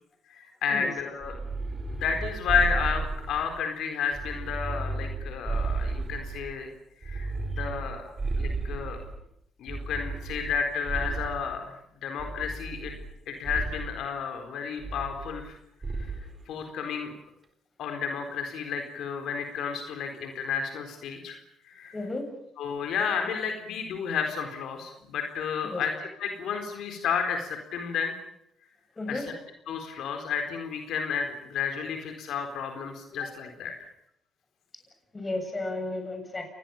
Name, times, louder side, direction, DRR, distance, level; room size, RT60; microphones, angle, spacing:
voice 1, 0.3-1.4 1.9-6.7 7.0-8.1 8.4-9.0 9.6-11.8 12.0-12.9 13.3-15.5 16.5-17.1 17.8-21.4 21.7-21.9 22.6-25.9 26.2-28.1 29.1-29.2 29.7-33.7, left 6 dB, 80° left, 5 dB, 4.2 m, -31 dB
sound 1, 1.2-3.6 4.1-6.6 7.0-9.2 9.7-11.6 12.2-13.2 13.4-13.9 14.8-15.5 15.8-16.3, right 3 dB, 30° right, 4.1 m, -33 dB
voice 2, 21.9-22.3 25.6-25.8 29.0-29.2 35.1-36.5, left 2 dB, 25° left, 5 dB, 7.5 m, -33 dB
29.0 x 20.5 x 7.3 m, 0.77 s
cardioid pair, 90°, 0 cm